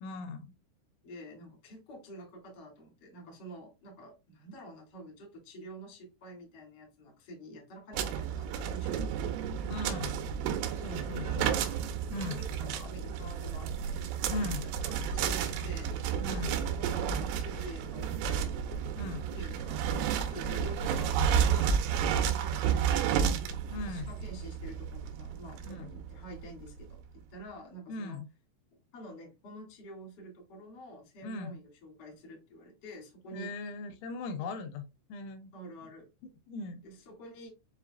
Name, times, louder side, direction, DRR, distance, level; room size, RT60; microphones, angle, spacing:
voice 1, 0.0-0.5 9.7-10.2 10.7-11.6 12.1-12.4 14.3-14.7 16.2-16.6 19.0-19.3 23.7-24.1 25.6-25.9 27.9-28.3 31.2-31.6 33.3-35.5 36.2-36.8, left 3 dB, 85° left, 3.0 m, -39 dB
voice 2, 1.0-9.3 10.8-11.8 12.1-14.0 14.6-15.9 16.4-18.6 19.3-21.8 22.1-23.3 23.8-28.2 28.9-33.5 34.4-34.5 35.5-36.1 36.8-37.5, right 1 dB, 45° left, 1.3 m, -48 dB
sound 1, 7.9-26.7, right 8 dB, 90° right, 3.3 m, -31 dB
7.3 x 2.6 x 2.4 m
omnidirectional pair, 5.6 m